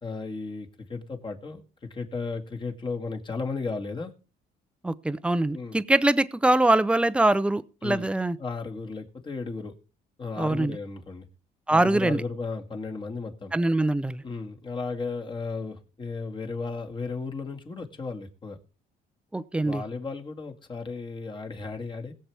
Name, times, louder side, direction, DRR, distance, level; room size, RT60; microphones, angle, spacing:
voice 1, 0.0-4.1 5.5-5.8 7.8-8.1 8.4-9.7 10.2-11.3 11.7-13.5 14.2-18.6 19.6-22.1, left 4 dB, 30° left, 3 dB, 2.0 m, -34 dB
voice 2, 4.8-8.4 10.4-10.8 11.7-12.2 13.5-14.2 19.3-19.8, right 2 dB, 5° right, 15 dB, 0.6 m, -23 dB
21.0 x 7.6 x 3.5 m, 0.36 s
cardioid pair, 110°, 17 cm